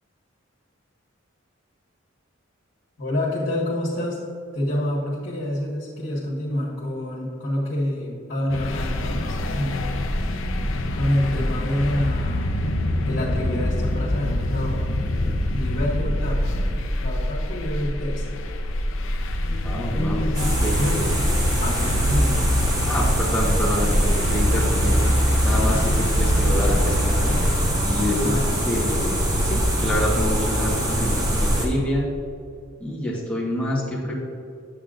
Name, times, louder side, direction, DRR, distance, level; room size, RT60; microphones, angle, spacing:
voice 1, 3.0-4.2 4.5-9.8 10.1-10.4 10.9-12.6 13.0-14.8 15.5-16.5 17.0-18.2 19.9-21.1 21.6-22.4 25.5-25.8 26.4-26.6 28.2-28.5, left 1 dB, 60° left, -6 dB, 1.6 m, -27 dB
sound 1, 8.5-27.6, left 1 dB, 75° left, 0.6 m, -26 dB
sound 2, 8.7-16.8, left 1 dB, 30° left, 0.7 m, -36 dB
voice 2, 19.6-20.2 20.6-21.2 22.9-24.9 25.4-25.8 26.1-27.3 27.8-28.4 28.7-32.1 32.8-34.1, left 1 dB, 5° left, -7 dB, 1.2 m, -27 dB
sound 3, 20.3-31.7, equal, 20° right, 1.1 m, -22 dB
8.5 x 8.0 x 2.5 m, 2.4 s
head